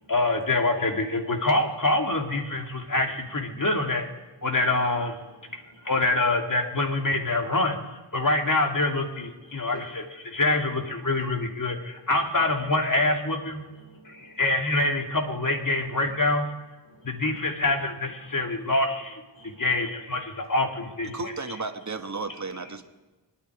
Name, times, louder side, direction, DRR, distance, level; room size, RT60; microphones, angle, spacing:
voice 1, 0.1-4.1 4.4-5.2 5.8-13.6 14.0-16.5 17.0-21.6 22.3-22.7, left 2 dB, 45° left, 2.7 m, -26 dB
voice 2, 5.2-5.9 9.4-10.0 13.7-14.4 16.8-17.2 17.6-17.7 18.2-18.6 19.3-19.7 21.0-21.2 22.8-22.9, left 1 dB, 75° left, 2.8 m, -55 dB
voice 3, 21.1-22.8, right 3 dB, 40° right, 1.5 m, -33 dB
28.0 x 10.0 x 4.9 m
cardioid pair, 50°, 44 cm